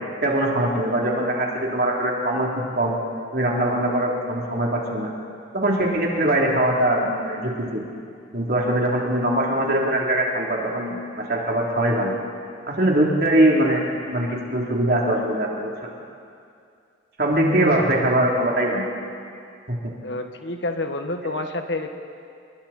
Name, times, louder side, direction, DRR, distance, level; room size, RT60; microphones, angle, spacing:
voice 1, 0.2-3.0 3.3-5.1 5.5-7.8 8.3-12.1 12.7-13.8 14.1-15.7 17.2-18.9 19.7-19.8, right 1 dB, 55° right, -2 dB, 3.6 m, -22 dB
voice 2, 20.0-21.9, left 2 dB, 70° left, 5 dB, 1.6 m, -28 dB
28.5 x 22.0 x 4.4 m, 2.4 s
head